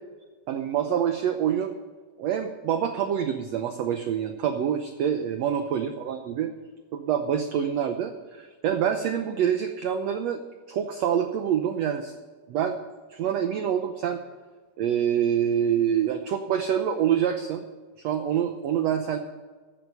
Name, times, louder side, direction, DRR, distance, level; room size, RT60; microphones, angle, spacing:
voice 1, 0.5-1.8 2.2-6.5 6.9-10.4 10.7-12.1 12.5-12.8 13.1-14.2 14.8-17.6 18.0-19.2, right 9 dB, 85° right, 7 dB, 1.5 m, -26 dB
15.0 x 9.5 x 5.5 m, 1.4 s
omnidirectional pair, 4.1 m